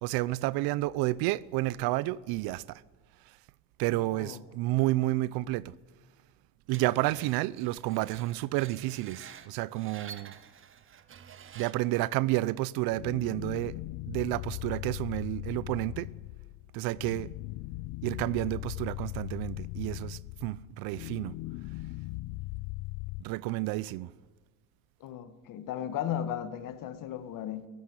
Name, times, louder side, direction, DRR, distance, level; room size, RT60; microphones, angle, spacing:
voice 1, 0.0-2.8 3.8-5.7 6.7-10.3 11.5-13.7 14.1-16.1 16.7-17.3 18.0-21.3 23.2-24.1, right 18 dB, 80° right, 0.7 m, -30 dB
voice 2, 3.9-4.4 25.0-27.7, left 10 dB, 60° left, 1.9 m, -36 dB
Screech, 6.7-12.0, right 8 dB, 35° right, 1.4 m, -50 dB
sound 1, 12.9-23.2, left 20 dB, 75° left, 0.6 m, -39 dB
22.0 x 13.5 x 9.8 m
cardioid pair, 125°, 36 cm